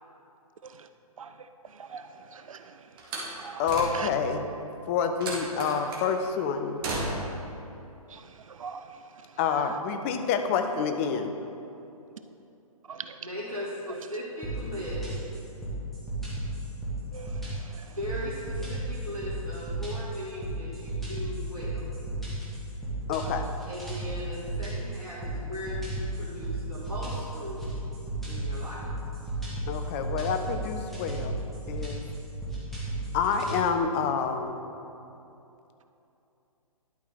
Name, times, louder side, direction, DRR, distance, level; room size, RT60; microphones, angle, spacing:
Slam, 3.0-4.3 5.2-6.1 6.8-7.5, right 2 dB, 40° right, 1.6 m, -34 dB
voice 1, 3.6-4.5 4.9-6.8 9.4-11.3 23.1-23.5 29.7-32.0 33.1-34.6, left 6 dB, 20° left, 7 dB, 0.5 m, -28 dB
voice 2, 8.5-8.8 12.9-13.1 17.1-17.3, right 6 dB, 65° right, 9 dB, 0.5 m, -40 dB
voice 3, 13.0-15.2 17.8-21.9 23.7-27.6 28.3-28.9, equal, 85° right, -9 dB, 1.8 m, -38 dB
sound 1, 14.4-33.6, right 2 dB, ahead, 1.7 m, -34 dB
11.5 x 4.5 x 4.1 m, 2.8 s
figure-of-eight pair, 125°, 19 cm